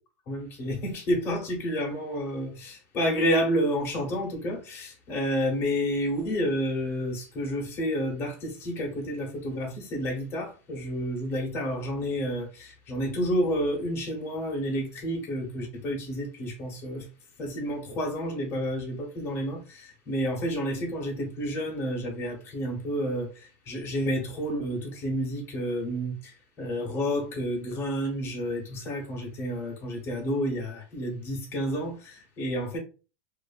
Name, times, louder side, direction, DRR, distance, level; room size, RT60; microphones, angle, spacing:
voice 1, 0.3-17.1 17.4-32.8, equal, 35° left, 1.2 m, -30 dB
2.6 x 2.4 x 2.4 m
supercardioid pair, 130°, 8 cm